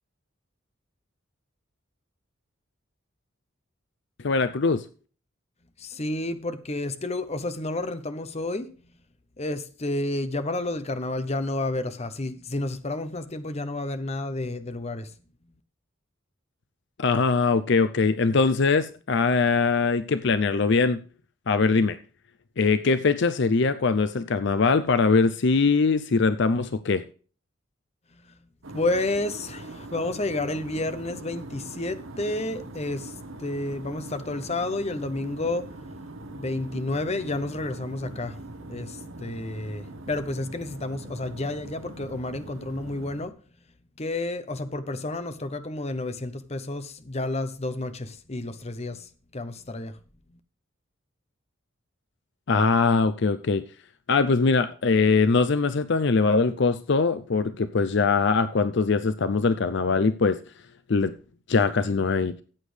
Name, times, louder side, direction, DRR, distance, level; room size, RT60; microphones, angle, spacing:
voice 1, 4.2-4.9 17.0-21.0 21.5-22.0 22.6-27.0 52.5-53.7 54.1-60.4 60.9-61.1 61.5-62.4, left 4 dB, 60° left, 0.5 m, -22 dB
voice 2, 5.8-8.7 9.4-15.1 28.1-28.4 28.7-35.7 36.3-38.4 38.7-43.4 44.0-50.0 50.3-50.4, left 2 dB, 30° left, 0.8 m, -31 dB
sound 1, 28.6-43.3, right 2 dB, 80° right, 1.2 m, -42 dB
14.5 x 8.4 x 3.3 m
head